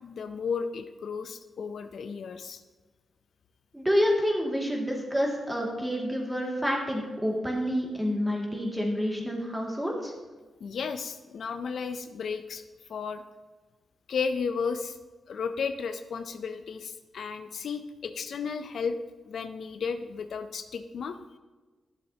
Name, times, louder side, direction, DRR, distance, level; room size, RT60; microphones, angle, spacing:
voice 1, 0.0-2.6 10.6-12.6 12.9-13.2 14.1-15.0 15.3-18.9 19.3-21.2, left 5 dB, 70° left, 9 dB, 0.5 m, -33 dB
voice 2, 3.7-10.1, equal, 10° right, -1 dB, 2.2 m, -28 dB
12.0 x 7.2 x 2.8 m, 1.3 s
cardioid pair, 75°, 0 cm